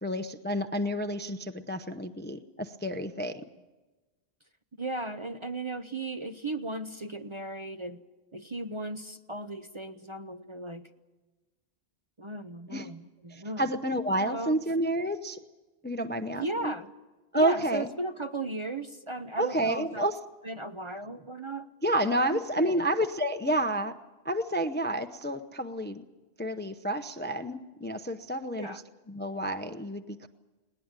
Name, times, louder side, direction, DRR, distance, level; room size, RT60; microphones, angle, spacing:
voice 1, 0.0-3.4 12.7-12.9 13.3-15.4 15.8-16.7 17.3-17.9 19.4-20.2 21.8-23.9 24.2-26.0 26.4-28.7 29.1-30.3, right 1 dB, 10° left, 8 dB, 0.7 m, -29 dB
voice 2, 4.8-8.0 8.3-10.9 12.2-13.7 14.2-14.6 16.3-16.9 17.3-20.1 20.4-21.7 22.0-22.9 28.6-28.8, right 2 dB, 30° right, 8 dB, 0.8 m, -36 dB
20.5 x 18.5 x 9.0 m, 1.2 s
omnidirectional pair, 1.1 m